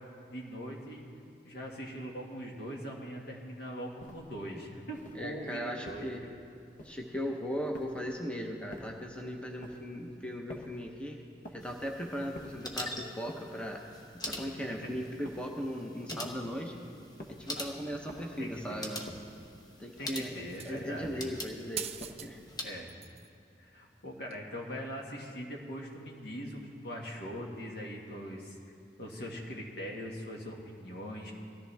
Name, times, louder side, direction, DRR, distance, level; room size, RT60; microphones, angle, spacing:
voice 1, 0.3-1.0 1.4-6.3 14.8-15.0 17.5-17.7 18.1-18.9 20.0-21.2 22.5-22.9 23.6-28.6 29.0-31.3, equal, 65° left, -1 dB, 1.9 m, -41 dB
sound 1, 4.0-4.4 4.9-5.3 5.9-6.2 6.8-7.2 7.7-8.2 8.7-9.1 9.6-10.0 10.5-10.9 11.4-11.8 12.3-12.7 13.3-13.7 14.3-14.7 15.3-15.6 16.2-16.6 17.2-17.5 18.1-18.5 19.1-19.5 20.0-20.4 21.0-21.4 22.0-22.4, equal, 50° left, 1.1 m, -49 dB
voice 2, 5.1-6.3 6.8-11.2 11.5-13.8 14.2-16.7 17.3-19.0 19.8-20.3 20.6-21.9 22.2-22.4, equal, 5° left, 1 dB, 0.9 m, -38 dB
sound 2, 11.6-22.7, left 1 dB, 25° left, 1.2 m, -44 dB
sound 3, 20.5-20.9 21.8-22.3 22.6-23.3 24.3-24.4, right 10 dB, 35° right, 0.5 m, -41 dB
18.0 x 14.0 x 3.5 m, 2.6 s
head